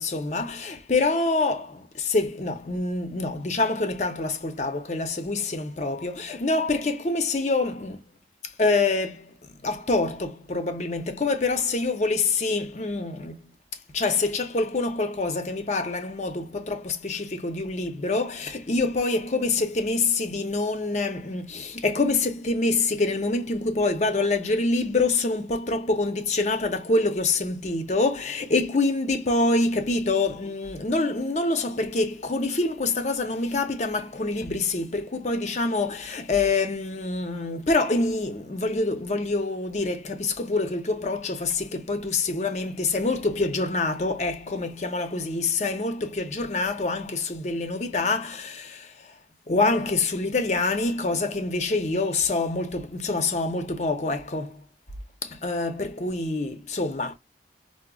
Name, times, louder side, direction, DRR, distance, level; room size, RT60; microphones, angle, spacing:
voice 1, 0.0-8.0 8.6-9.3 9.6-13.4 13.9-48.9 49.5-54.6 55.2-57.1, left 3 dB, 40° left, 0.6 m, -26 dB
4.8 x 2.0 x 2.3 m
head